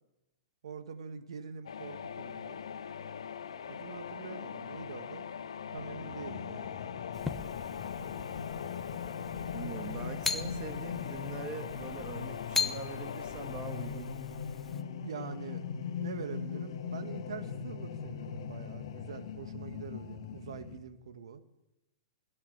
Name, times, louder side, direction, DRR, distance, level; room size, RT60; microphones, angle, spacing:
voice 1, 0.6-2.6 3.7-5.2 5.7-6.7 15.0-15.6 16.0-21.4, right 6 dB, 75° right, 10 dB, 1.6 m, -44 dB
sound 1, 1.7-15.5, left 7 dB, 90° left, 1.0 m, -42 dB
sound 2, 5.8-20.8, left 7 dB, 65° left, 1.9 m, -41 dB
sound 3, 7.1-14.8, left 5 dB, 10° left, 0.8 m, -40 dB
voice 2, 9.5-14.1, right 6 dB, 30° right, 7 dB, 1.7 m, -43 dB
20.5 x 8.7 x 8.1 m, 0.97 s
hypercardioid pair, 135°, 3 cm